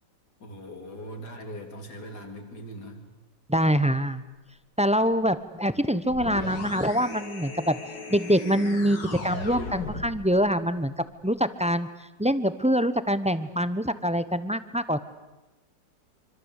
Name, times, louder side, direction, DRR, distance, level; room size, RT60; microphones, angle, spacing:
voice 1, 0.4-3.0, equal, 65° left, 5 dB, 3.9 m, -40 dB
voice 2, 3.5-4.2 4.8-7.8 8.1-9.0 9.2-10.9 11.2-11.9 12.2-15.0, equal, 5° right, 13 dB, 0.6 m, -24 dB
sound 1, 6.1-10.3, left 3 dB, 85° left, 3.1 m, -36 dB
25.5 x 25.5 x 8.3 m, 1.1 s
omnidirectional pair, 1.9 m